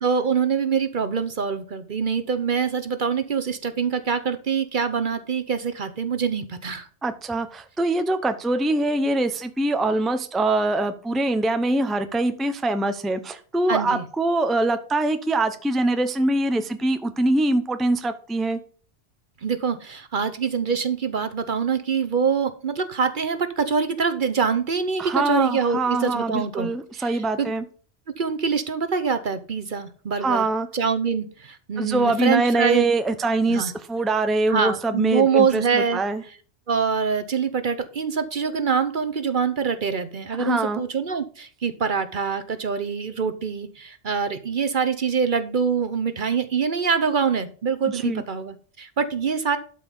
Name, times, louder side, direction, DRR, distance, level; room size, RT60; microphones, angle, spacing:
voice 1, 0.0-6.9 13.7-14.0 19.4-27.5 28.2-30.5 30.7-32.9 33.5-33.7 34.5-36.0 36.7-49.6, right 6 dB, 50° right, 10 dB, 1.0 m, -24 dB
voice 2, 7.0-18.6 25.0-27.6 30.2-30.7 31.8-36.2 40.4-40.8 47.9-48.2, right 2 dB, ahead, 9 dB, 0.6 m, -23 dB
12.0 x 5.1 x 5.4 m, 0.42 s
omnidirectional pair, 1.1 m